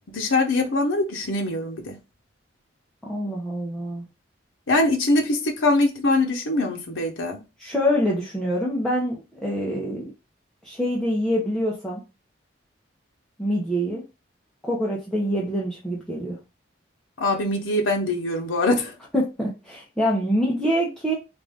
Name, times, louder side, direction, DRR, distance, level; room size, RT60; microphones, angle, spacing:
voice 1, 0.1-2.0 4.7-7.4 17.2-18.9, left 2 dB, 90° left, 0.8 m, -23 dB
voice 2, 3.0-4.1 7.6-10.1 10.6-12.0 13.4-14.0 14.6-16.4 19.1-21.1, equal, 5° left, 0.7 m, -25 dB
3.7 x 2.5 x 3.5 m
head